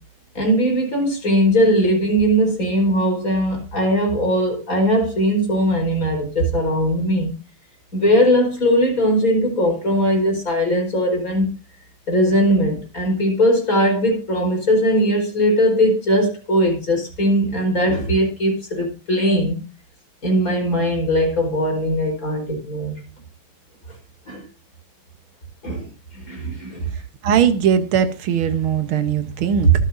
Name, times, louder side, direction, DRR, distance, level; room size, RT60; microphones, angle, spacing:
voice 1, 0.4-7.3 7.9-11.5 12.1-19.6 20.2-23.0 24.3-24.4 25.6-25.9 26.2-26.9 29.6-29.7, equal, 40° left, 5.3 m, -19 dB
voice 2, 27.2-29.7, right 8 dB, 85° right, 1.9 m, -19 dB
24.5 x 8.3 x 2.7 m
omnidirectional pair, 2.2 m